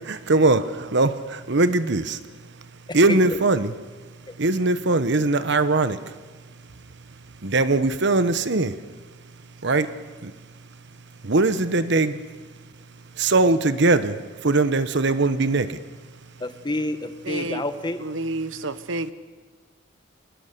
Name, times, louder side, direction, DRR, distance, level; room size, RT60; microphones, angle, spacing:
voice 1, 0.1-0.6 0.9-2.2 2.9-3.7 4.4-6.0 7.4-8.7 9.6-9.9 10.2-10.3 11.2-12.2 13.2-14.2 14.4-15.8, right 2 dB, 65° right, 12 dB, 1.1 m, -20 dB
voice 2, 2.9-3.3 4.3-4.4 16.4-18.0, left 1 dB, 25° left, 9 dB, 1.2 m, -29 dB
voice 3, 17.3-17.6 18.0-19.1, right 2 dB, 90° right, 13 dB, 1.1 m, -29 dB
25.5 x 20.5 x 6.9 m, 1.4 s
head